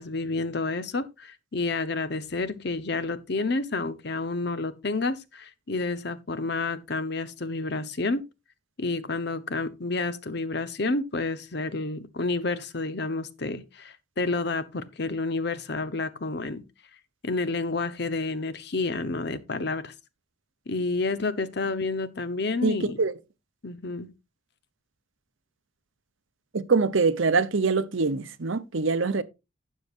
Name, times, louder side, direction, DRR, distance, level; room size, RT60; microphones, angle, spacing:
voice 1, 0.0-8.2 8.8-16.6 17.2-19.9 20.7-23.0 23.6-24.1, left 3 dB, 55° left, 0.9 m, -30 dB
voice 2, 22.6-23.1 26.5-29.2, right 4 dB, 80° right, 0.8 m, -24 dB
12.0 x 8.5 x 2.6 m
head